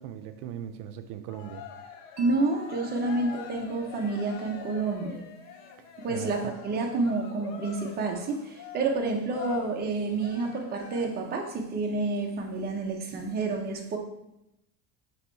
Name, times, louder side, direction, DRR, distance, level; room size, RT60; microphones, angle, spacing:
voice 1, 0.0-1.6 6.1-6.5, right 9 dB, 70° right, 8 dB, 0.6 m, -39 dB
Cheering, 1.3-11.3, left 8 dB, 80° left, 1.0 m, -44 dB
voice 2, 2.2-5.2 6.0-14.0, right 3 dB, 20° right, 1 dB, 0.7 m, -29 dB
Mallet percussion, 2.2-6.2, left 4 dB, 45° right, 1.0 m, -48 dB
7.9 x 3.0 x 4.4 m, 0.87 s
cardioid pair, 165°, 44 cm